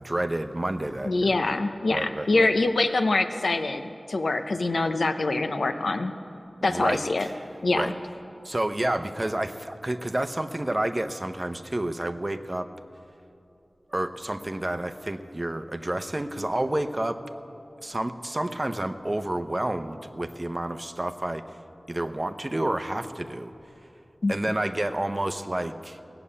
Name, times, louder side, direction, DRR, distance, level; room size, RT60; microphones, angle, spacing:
voice 1, 0.0-1.4 1.9-2.5 6.6-7.3 7.7-7.9 8.4-12.7 13.9-17.2 17.8-21.4 21.9-23.5 24.3-26.0, right 1 dB, 30° right, 8 dB, 0.7 m, -29 dB
voice 2, 1.0-6.1 6.6-7.3 7.6-7.9 24.2-24.3, left 2 dB, 85° left, 8 dB, 0.7 m, -24 dB
18.0 x 7.0 x 8.6 m, 2.8 s
wide cardioid pair, 60°, 0 cm